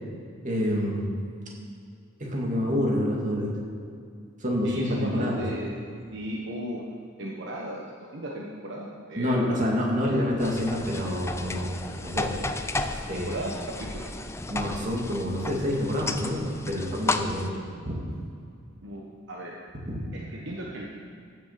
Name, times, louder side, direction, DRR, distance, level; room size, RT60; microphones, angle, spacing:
voice 1, 0.4-1.1 2.2-3.6 4.4-5.4 9.2-12.3 13.1-13.3 14.5-18.0, equal, 40° right, -2 dB, 2.3 m, -27 dB
voice 2, 4.6-5.7 6.1-6.8 7.2-9.5 13.1-14.1 18.8-19.6 20.1-20.9, equal, 60° right, -2 dB, 1.2 m, -36 dB
sound 1, 10.4-17.5, left 2 dB, 15° left, 0.5 m, -33 dB
15.0 x 7.1 x 5.8 m, 2.4 s
head